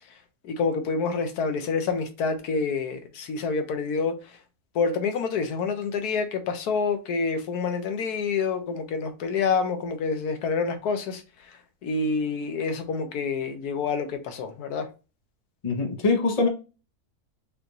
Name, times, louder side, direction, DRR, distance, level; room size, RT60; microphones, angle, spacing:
voice 1, 0.4-4.2 4.7-11.6 11.8-14.9, left 5 dB, 80° left, 1.3 m, -27 dB
voice 2, 15.6-16.5, left 3 dB, 30° left, 0.8 m, -23 dB
5.5 x 2.5 x 3.0 m
omnidirectional pair, 1.6 m